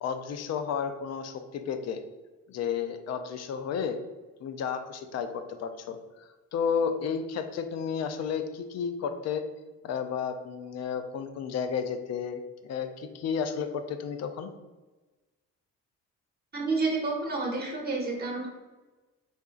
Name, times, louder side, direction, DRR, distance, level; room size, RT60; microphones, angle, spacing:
voice 1, 0.0-2.0 2.5-4.0 4.4-6.0 6.5-9.4 9.8-14.5, left 7 dB, 60° left, 8 dB, 0.4 m, -32 dB
voice 2, 16.5-18.5, right 3 dB, 30° right, -2 dB, 1.1 m, -29 dB
3.7 x 2.4 x 2.4 m, 1.2 s
cardioid pair, 90°, 30 cm